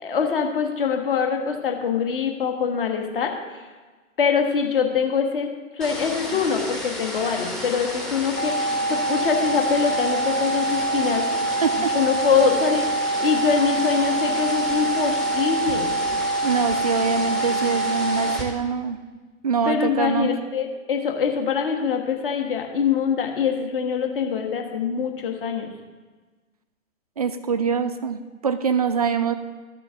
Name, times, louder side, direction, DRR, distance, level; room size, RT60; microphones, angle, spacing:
voice 1, 0.0-3.3 4.2-5.5 5.8-11.2 11.5-15.9 19.6-25.7, left 6 dB, 45° left, 3 dB, 1.5 m, -24 dB
sound 1, 5.8-18.4, equal, ahead, 0.7 m, -32 dB
sound 2, 8.4-18.4, right 2 dB, 85° left, 1.0 m, -25 dB
voice 2, 11.6-11.9 16.4-19.0 19.4-20.3 27.2-29.3, right 6 dB, 30° right, 11 dB, 0.4 m, -24 dB
13.0 x 6.8 x 3.6 m, 1.3 s
figure-of-eight pair, 125°, 39 cm